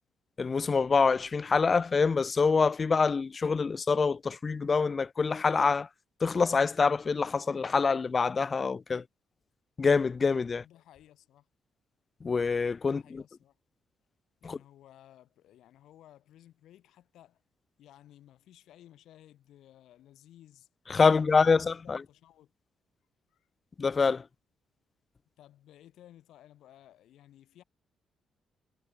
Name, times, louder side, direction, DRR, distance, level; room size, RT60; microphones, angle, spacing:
voice 1, 0.4-5.9 6.2-9.0 9.8-10.6 12.2-13.2 14.5-14.6 20.9-22.0 23.8-24.2, left 5 dB, 35° left, 0.3 m, -25 dB
voice 2, 10.5-11.5 12.9-13.5 14.4-17.4 17.8-20.7 21.1-22.5 23.3-23.5 25.4-27.6, left 12 dB, 80° left, 6.3 m, -57 dB
cardioid pair, 90°, 0 cm